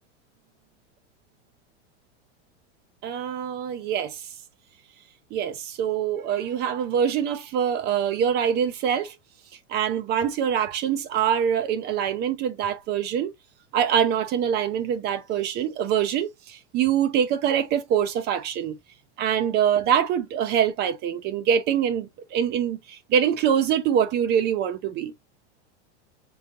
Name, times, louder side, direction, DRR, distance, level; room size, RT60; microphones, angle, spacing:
voice 1, 3.0-4.3 5.3-9.1 9.7-13.3 13.7-18.8 19.2-25.1, right 8 dB, 30° right, 0.4 m, -24 dB
3.8 x 3.5 x 2.7 m
supercardioid pair, 130°, 35 cm